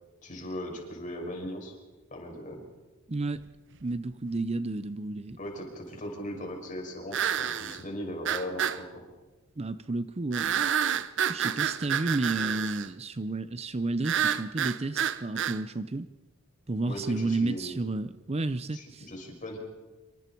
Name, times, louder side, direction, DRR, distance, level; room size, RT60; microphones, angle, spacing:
voice 1, 0.2-1.8 2.1-2.6 5.4-9.1 16.8-17.8 18.7-19.6, equal, 40° left, 1 dB, 6.0 m, -38 dB
voice 2, 3.1-3.4 3.8-5.4 9.6-10.7 11.3-16.1 16.7-19.1, right 2 dB, 30° right, 13 dB, 0.6 m, -31 dB
sound 1, 3.5-3.6 7.1-7.8 8.2-8.8 10.3-12.9 14.0-15.6, right 9 dB, 60° right, 0.8 m, -29 dB
27.0 x 25.0 x 4.6 m, 1.2 s
head